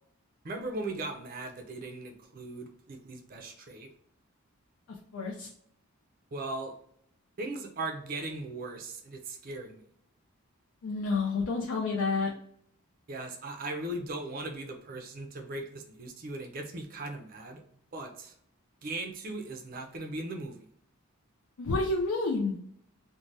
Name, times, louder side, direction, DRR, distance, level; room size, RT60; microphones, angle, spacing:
voice 1, 0.4-3.9 6.3-6.7 7.4-9.8 13.1-17.6 17.9-18.3 18.8-20.7, right 2 dB, 40° right, 4 dB, 0.4 m, -38 dB
voice 2, 4.9-5.5 10.8-12.3 21.6-22.6, left 3 dB, 70° left, -1 dB, 0.4 m, -29 dB
3.2 x 2.1 x 2.6 m, 0.66 s
head